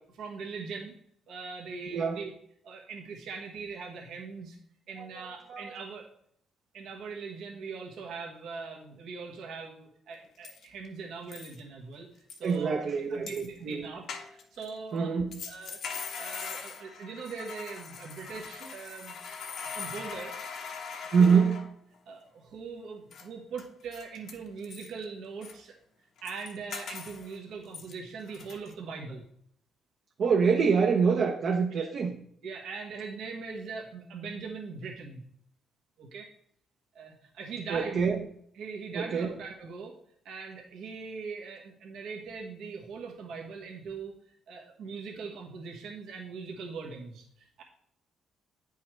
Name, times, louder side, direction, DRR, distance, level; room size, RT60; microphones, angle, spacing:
voice 1, 0.2-0.9 1.3-2.3 2.6-4.6 4.9-6.1 6.7-12.1 12.4-15.1 15.5-15.8 16.1-19.2 19.4-20.3 20.9-21.5 22.1-25.8 26.2-29.3 31.7-31.9 32.4-35.2 36.0-36.3 36.9-38.0 38.5-40.0 40.2-44.2 44.5-47.6, right 5 dB, 80° right, 0 dB, 1.3 m, -41 dB
voice 2, 5.0-5.7 12.4-13.9 14.9-15.4 21.1-21.7 30.2-32.2 37.7-38.2 38.9-39.3, right 5 dB, 60° right, 2 dB, 0.8 m, -26 dB
sound 1, 10.1-10.2 10.4-10.9 11.3-11.6 12.3-12.6 13.3-13.5 14.1-14.7 15.3-21.9 23.1-23.3 23.6-23.7 23.9-25.0 25.4-25.5 26.2-27.4 27.7-27.9 28.3-28.7, left 5 dB, 70° left, 1.1 m, -41 dB
9.0 x 5.5 x 3.2 m, 0.68 s
cardioid pair, 90°, 0 cm